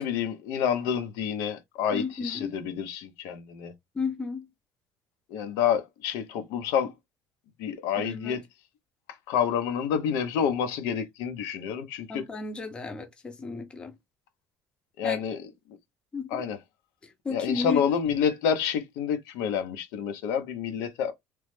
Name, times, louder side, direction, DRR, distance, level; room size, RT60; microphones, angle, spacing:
voice 1, 0.0-3.7 5.3-6.9 7.6-8.4 9.3-12.2 15.0-15.4 16.3-16.6 17.3-21.1, left 8 dB, 85° left, 0.7 m, -28 dB
voice 2, 1.9-2.6 3.9-4.5 8.0-8.4 12.1-14.0 15.0-15.2 16.1-16.4 17.0-18.0, left 4 dB, 15° left, 0.6 m, -34 dB
3.1 x 2.0 x 3.1 m
cardioid pair, 155°, 5 cm